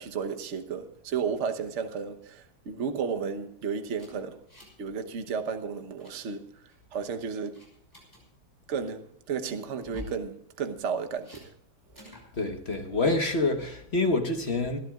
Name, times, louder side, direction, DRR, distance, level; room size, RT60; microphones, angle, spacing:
voice 1, 0.0-4.4 4.8-7.6 8.7-11.5 12.0-12.1, right 6 dB, 45° right, 1.1 m, -33 dB
sound 1, 4.0-4.9 5.1-5.4 5.7-6.2 6.7-7.1 7.5-8.2 9.8-10.2 11.2-11.5 12.0-12.3, equal, 10° left, 5.5 m, -47 dB
voice 2, 12.3-14.8, left 2 dB, 35° left, 1.3 m, -27 dB
26.5 x 12.0 x 2.4 m
omnidirectional pair, 2.2 m